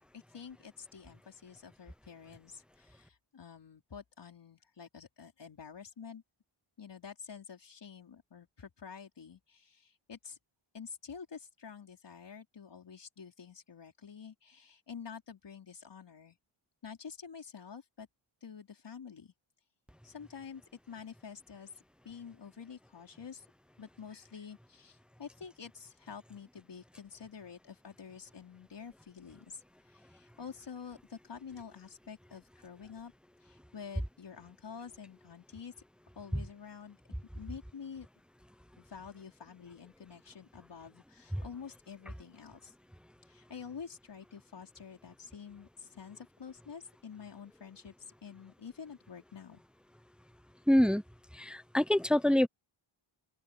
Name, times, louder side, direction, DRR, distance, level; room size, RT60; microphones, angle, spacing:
voice 1, 0.0-6.2 6.8-10.4 10.7-16.4 16.8-18.1 18.4-19.3 20.0-20.6 20.9-21.7 22.0-23.4 23.8-29.6 29.9-33.1 33.4-35.7 36.1-37.0 37.3-38.1 38.8-42.7 43.3-49.6, left 6 dB, 55° left, 4.9 m, -48 dB
voice 2, 50.7-51.0 51.4-52.5, left 1 dB, ahead, 0.6 m, -25 dB
open air
wide cardioid pair, 150°, 50 cm